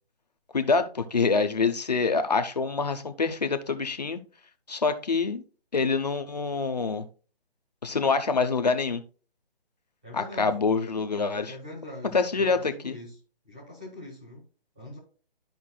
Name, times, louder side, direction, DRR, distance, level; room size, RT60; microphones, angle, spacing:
voice 1, 0.5-4.2 4.7-5.4 5.7-7.0 7.8-9.0 10.1-11.5 12.1-13.0, left 4 dB, 40° left, 8 dB, 0.7 m, -26 dB
voice 2, 10.0-10.5 11.4-13.1 13.4-14.4 14.7-15.0, left 1 dB, 10° right, -4 dB, 1.0 m, -42 dB
12.0 x 5.4 x 2.2 m, 0.38 s
hypercardioid pair, 180°, 31 cm